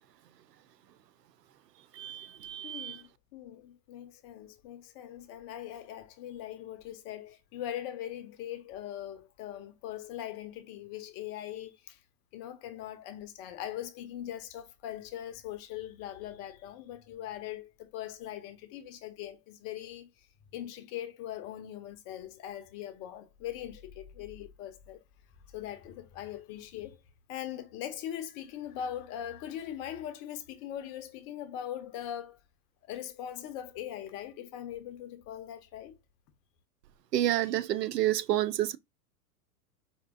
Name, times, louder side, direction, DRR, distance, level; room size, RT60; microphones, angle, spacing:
voice 1, 2.0-3.0 37.1-38.8, right 13 dB, 80° right, 0.5 m, -29 dB
voice 2, 2.6-12.0 12.3-20.1 20.5-25.0 25.5-27.0 27.3-32.4 32.9-36.0, left 11 dB, 30° left, 0.6 m, -41 dB
4.4 x 2.7 x 2.5 m
hypercardioid pair, 100°, 48 cm